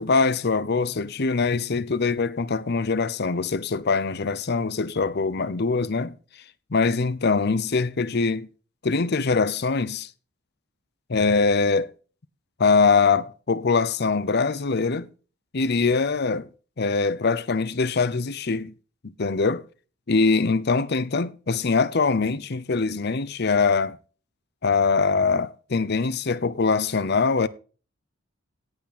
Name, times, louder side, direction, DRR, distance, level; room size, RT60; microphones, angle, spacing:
voice 1, 0.0-6.2 6.7-8.5 8.8-10.1 11.1-11.9 12.6-15.1 15.5-16.5 16.8-18.7 19.0-19.6 20.1-24.0 24.6-27.5, left 4 dB, 55° left, 0.7 m, -23 dB
17.0 x 6.0 x 4.1 m
head